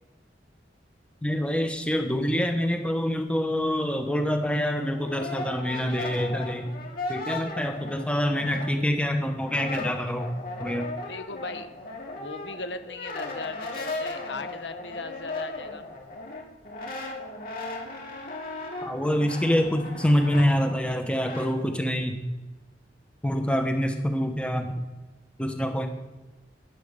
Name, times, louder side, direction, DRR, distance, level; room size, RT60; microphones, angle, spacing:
voice 1, 1.2-6.7 7.1-10.3 10.6-10.9 18.8-22.2 23.2-24.8 25.4-25.9, equal, 5° left, 5 dB, 1.0 m, -26 dB
Brass instrument, 4.7-9.1 9.4-21.5, left 2 dB, 55° left, 2.7 m, -37 dB
voice 2, 11.0-11.7 12.2-15.9, left 3 dB, 85° left, 9 dB, 1.1 m, -38 dB
10.5 x 8.7 x 6.8 m, 1.2 s
head